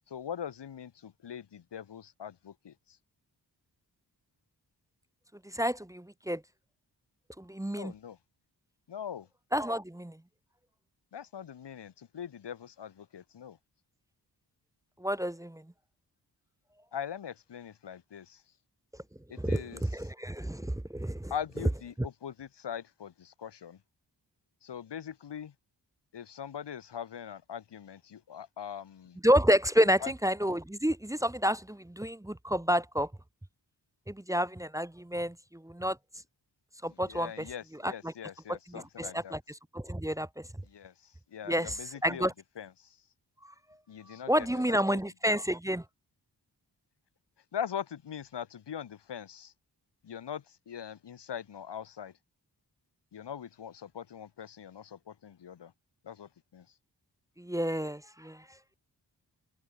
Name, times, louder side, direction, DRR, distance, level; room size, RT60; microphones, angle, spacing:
voice 1, 0.1-3.0 7.7-8.2 8.9-9.3 11.1-13.6 16.9-18.4 19.3-19.8 21.3-23.8 24.6-25.5 26.1-29.2 30.0-30.1 36.8-39.4 40.6-42.3 42.6-43.0 43.9-45.4 47.5-49.5 50.0-52.1 53.1-55.7 56.0-56.7, left 8 dB, 90° left, 2.6 m, -42 dB
voice 2, 5.4-6.4 7.4-7.9 9.5-10.2 15.0-15.6 19.4-21.3 29.2-33.1 34.1-36.0 36.8-37.5 37.8-38.1 38.5-39.4 39.7-40.5 41.5-41.7 42.0-42.3 44.3-45.8 57.4-58.4, equal, 10° right, 1.0 m, -29 dB
cardioid pair, 70°, 40 cm